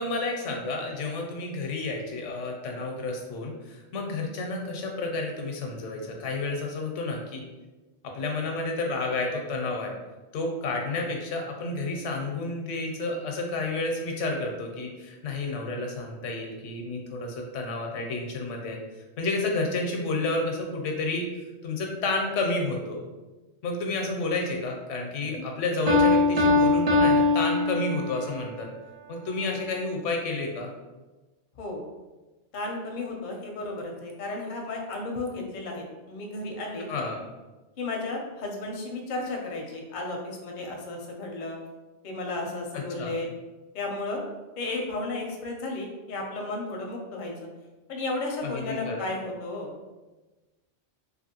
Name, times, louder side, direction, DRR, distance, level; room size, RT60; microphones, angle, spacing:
voice 1, 0.0-7.4 8.0-9.9 10.3-18.8 19.2-21.3 21.6-23.0 23.6-28.7 29.1-30.7 36.9-37.2 42.7-43.1 48.4-49.1, left 2 dB, 85° left, 1 dB, 0.9 m, -30 dB
Piano, 25.9-28.3, left 3 dB, 65° right, 0.3 m, -21 dB
voice 2, 32.5-36.9 37.8-41.6 42.0-43.3 43.7-44.2 44.6-47.5 47.9-49.7, left 2 dB, 55° left, 1 dB, 0.6 m, -33 dB
2.8 x 2.5 x 2.8 m, 1.2 s
omnidirectional pair, 1.2 m